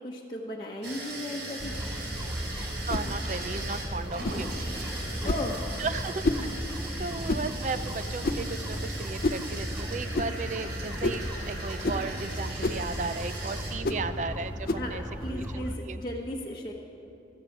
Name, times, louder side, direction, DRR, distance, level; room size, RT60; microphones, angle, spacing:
voice 1, 0.0-1.9 5.2-5.6 14.8-16.7, left 1 dB, 25° left, -4 dB, 1.0 m, -36 dB
sound 1, 0.8-13.7, right 2 dB, 85° right, 3.2 m, -39 dB
sound 2, 1.6-15.8, equal, 5° right, 0.7 m, -36 dB
sound 3, 2.9-3.1 4.2-4.5 5.3-5.5 6.2-6.5 7.3-7.5 8.2-8.5 9.2-9.5 10.1-10.3 11.0-11.3 11.8-12.1 12.6-12.9 13.8-14.1 14.7-14.9, left 2 dB, 55° left, 0.5 m, -29 dB
voice 2, 2.9-4.7 5.8-6.5 7.0-15.0 15.3-16.0, right 4 dB, 40° right, 12 dB, 0.4 m, -35 dB
16.0 x 13.0 x 5.9 m, 2.8 s
head